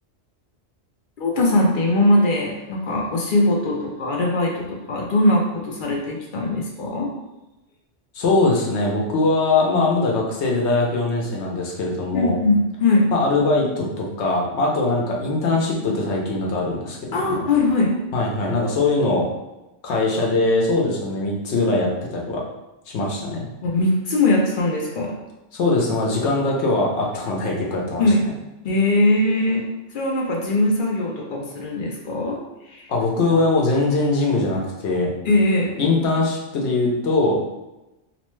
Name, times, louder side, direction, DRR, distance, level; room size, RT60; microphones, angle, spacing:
voice 1, 1.2-7.1 12.1-13.1 17.1-18.0 23.6-25.2 28.0-28.2 28.6-32.9 35.2-35.8, left 2 dB, 60° left, -1 dB, 0.6 m, -21 dB
voice 2, 8.1-12.4 13.1-17.4 18.1-19.3 19.8-22.4 22.9-23.4 25.5-28.0 32.9-35.1 35.8-37.4, left 2 dB, 75° left, -2 dB, 0.9 m, -21 dB
2.9 x 2.1 x 3.1 m, 0.98 s
omnidirectional pair, 1.2 m